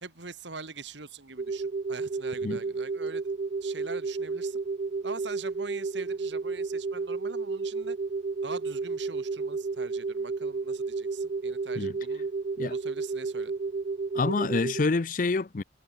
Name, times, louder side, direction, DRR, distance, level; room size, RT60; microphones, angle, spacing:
voice 1, 0.0-3.2 3.6-4.6 5.0-8.0 8.4-12.3 12.6-13.5, right 4 dB, 75° right, 2.7 m, -43 dB
sound 1, 1.4-14.8, right 4 dB, 40° right, 0.3 m, -32 dB
voice 2, 14.1-15.6, left 3 dB, 45° left, 0.5 m, -27 dB
head